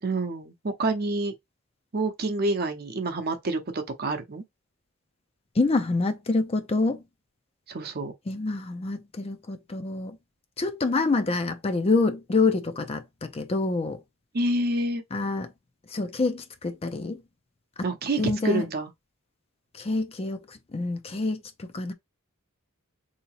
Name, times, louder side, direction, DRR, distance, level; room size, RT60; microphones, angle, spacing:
voice 1, 0.0-1.3 1.9-4.4 7.7-8.1 14.3-15.0 17.8-18.9, right 2 dB, 50° right, 0.7 m, -28 dB
voice 2, 5.5-7.0 8.3-10.2 10.6-14.0 15.1-15.5 15.9-17.2 17.8-17.9 18.2-18.7 19.7-21.9, left 3 dB, 30° left, 0.4 m, -27 dB
3.8 x 2.8 x 2.9 m
head